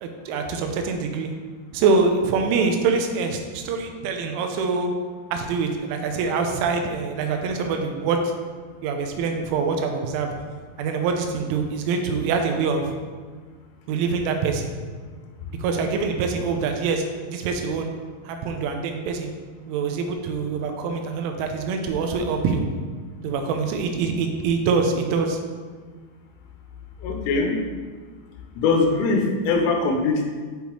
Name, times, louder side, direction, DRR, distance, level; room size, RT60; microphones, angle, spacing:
voice 1, 0.0-1.3 1.7-4.9 5.3-8.2 8.8-10.3 10.8-12.9 13.9-14.7 15.6-17.1 17.3-17.9 18.3-19.3 19.7-22.6 23.2-25.4, right 4 dB, 80° right, 4 dB, 3.0 m, -24 dB
voice 2, 27.0-27.6 28.6-30.2, left 3 dB, 85° left, 3 dB, 3.3 m, -21 dB
8.5 x 5.5 x 3.0 m, 1.5 s
omnidirectional pair, 5.7 m